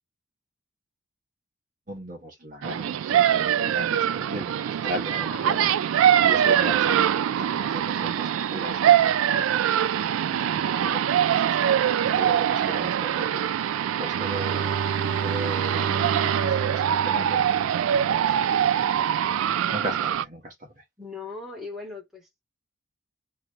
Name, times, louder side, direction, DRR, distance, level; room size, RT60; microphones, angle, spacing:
voice 1, 1.9-13.7 14.0-14.8 15.2-18.9 19.2-20.8, right 1 dB, 40° right, 1.1 m, -38 dB
sound 1, 2.6-20.2, right 10 dB, 85° right, 0.3 m, -23 dB
Bowed string instrument, 14.0-18.5, right 6 dB, 70° right, 0.7 m, -31 dB
voice 2, 21.0-22.4, left 3 dB, ahead, 1.4 m, -39 dB
3.1 x 2.5 x 2.9 m
head